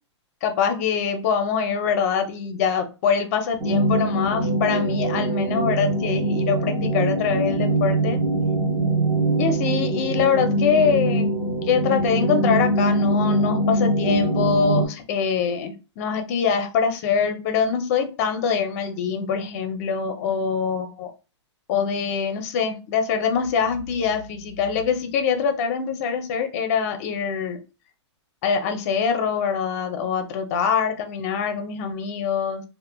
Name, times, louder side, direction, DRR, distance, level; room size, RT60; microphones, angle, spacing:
voice 1, 0.4-8.2 9.4-11.3 11.6-21.1 21.7-27.6 28.4-32.6, left 6 dB, 30° left, 0.6 m, -24 dB
sound 1, 3.6-14.9, right 1 dB, 15° right, 0.7 m, -23 dB
3.2 x 2.1 x 2.2 m
hypercardioid pair, 155°, 15 cm